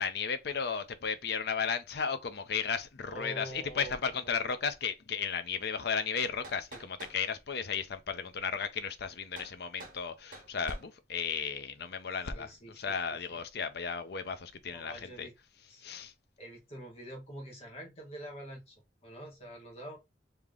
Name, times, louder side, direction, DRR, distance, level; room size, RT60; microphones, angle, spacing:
voice 1, 0.0-15.3 15.8-16.1, left 6 dB, 65° left, 0.6 m, -34 dB
voice 2, 3.1-4.5 6.7-6.8 12.3-13.4 14.7-15.3 15.7-15.8 16.4-20.0, right 1 dB, 35° left, 1.2 m, -46 dB
sound 1, 6.1-7.2 9.4-9.6 9.8-10.0 10.3-10.9, right 2 dB, 50° right, 1.3 m, -48 dB
3.3 x 2.9 x 3.7 m
head